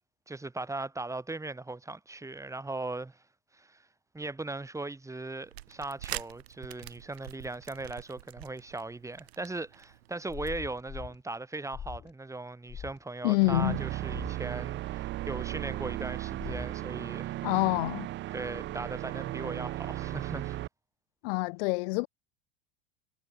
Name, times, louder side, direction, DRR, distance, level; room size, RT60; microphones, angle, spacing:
voice 1, 0.3-3.2 3.5-3.8 4.1-17.4 18.3-20.6, right 2 dB, 10° right, 2.6 m, -38 dB
sound 1, 5.4-10.5, right 15 dB, 80° right, 7.0 m, -45 dB
sound 2, 10.3-11.2 11.7-12.1 12.7-13.0 14.1-14.4 16.4-16.8, left 8 dB, 30° left, 4.3 m, -42 dB
voice 2, 13.2-13.8 17.4-18.1 21.2-22.1, left 28 dB, 65° left, 0.9 m, -27 dB
sound 3, 13.4-20.7, right 15 dB, 35° right, 0.6 m, -36 dB
hypercardioid pair, 95°, 31 cm